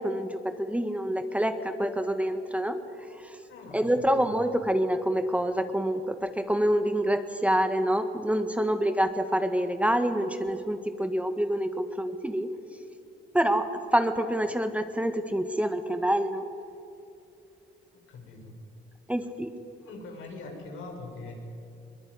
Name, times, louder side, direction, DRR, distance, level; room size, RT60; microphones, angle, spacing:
voice 1, 0.0-2.8 3.2-3.3 3.7-12.5 13.3-16.4 19.1-19.5, equal, 5° right, 8 dB, 1.7 m, -27 dB
voice 2, 3.5-4.4 18.1-18.5 19.8-21.3, left 3 dB, 80° left, 1 dB, 6.3 m, -43 dB
22.0 x 21.5 x 9.9 m, 2.6 s
cardioid pair, 90°, 20 cm